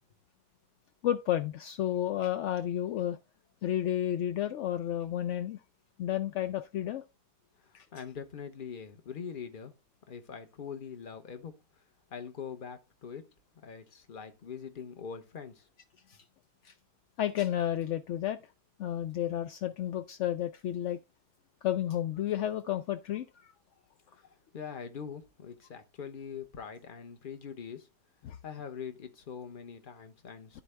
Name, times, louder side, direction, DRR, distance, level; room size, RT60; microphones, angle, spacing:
voice 1, 1.0-3.2 3.6-5.6 6.0-7.0 7.7-7.9 16.1-16.2 16.6-16.7 17.2-18.4 18.8-21.0 21.6-23.5 28.2-28.4, left 11 dB, 70° left, 0.7 m, -31 dB
voice 2, 7.6-9.7 10.1-11.6 12.1-15.7 24.1-24.2 24.5-27.9 28.4-30.6, left 6 dB, 40° left, 0.9 m, -43 dB
12.0 x 4.2 x 3.3 m
omnidirectional pair, 1.7 m